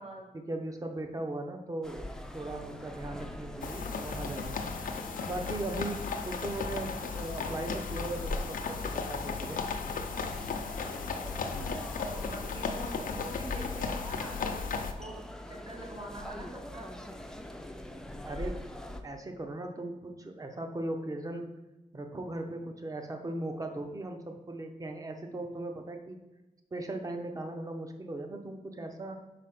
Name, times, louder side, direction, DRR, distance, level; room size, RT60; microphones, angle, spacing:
voice 1, 0.3-4.8 5.3-9.6 11.5-11.8 17.9-18.7 19.0-21.5 21.9-26.2 26.7-29.2, right 2 dB, 25° right, 5 dB, 0.8 m, -38 dB
sound 1, 1.8-19.0, left 1 dB, 5° left, 0.4 m, -43 dB
sound 2, 3.6-14.9, left 5 dB, 80° left, 0.6 m, -35 dB
voice 2, 4.1-4.5 5.4-5.8 11.0-11.4 12.0-16.9, right 1 dB, 40° right, -4 dB, 2.5 m, -45 dB
5.0 x 4.8 x 5.9 m, 1.1 s
wide cardioid pair, 165°, 14 cm